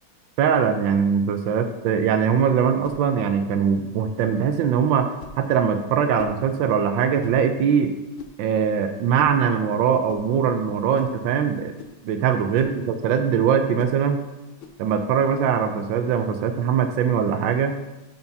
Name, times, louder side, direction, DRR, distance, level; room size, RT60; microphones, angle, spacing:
voice 1, 0.4-5.1 5.4-7.9 8.4-11.7 12.0-14.2 14.8-17.8, right 7 dB, 75° right, 6 dB, 1.3 m, -21 dB
sound 1, 2.8-3.0 4.2-4.4 5.2-5.4 6.2-6.4 7.2-7.4 8.2-8.4 9.1-9.4 10.1-10.3 10.9-11.2 11.8-12.0 12.5-12.8 13.8-14.0 14.6-14.8, left 5 dB, 80° left, 1.5 m, -42 dB
12.5 x 5.9 x 2.7 m, 1.0 s
omnidirectional pair, 2.3 m